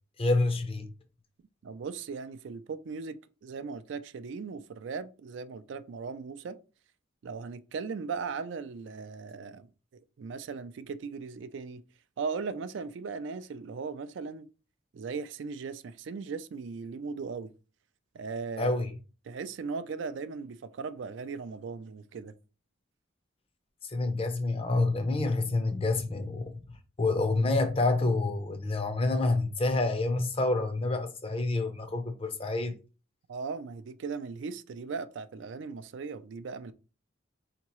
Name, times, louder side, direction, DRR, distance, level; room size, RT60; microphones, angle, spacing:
voice 1, 0.2-0.9 18.6-18.9 23.9-26.6 27.0-32.7, left 2 dB, 30° left, 0.5 m, -28 dB
voice 2, 1.6-3.2 3.4-6.6 7.2-9.7 10.2-11.8 12.2-14.5 14.9-17.5 18.1-18.7 19.3-22.3 33.3-36.7, right 5 dB, 65° right, 0.3 m, -38 dB
4.5 x 2.9 x 2.9 m
head